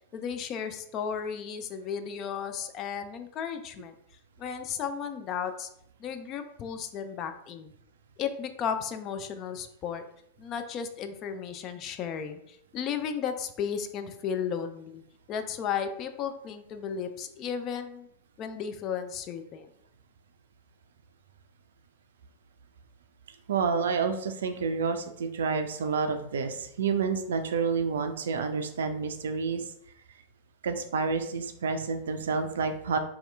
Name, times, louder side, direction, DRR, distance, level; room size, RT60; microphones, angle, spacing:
voice 1, 0.0-3.9 4.4-5.7 6.0-7.7 8.2-10.0 10.4-15.0 15.3-18.1 18.4-19.7, left 7 dB, 35° left, 8 dB, 0.3 m, -34 dB
voice 2, 23.5-29.7 30.6-33.0, right 5 dB, 65° right, 8 dB, 0.3 m, -29 dB
2.8 x 2.3 x 3.2 m, 0.74 s
figure-of-eight pair, 90°, 0 cm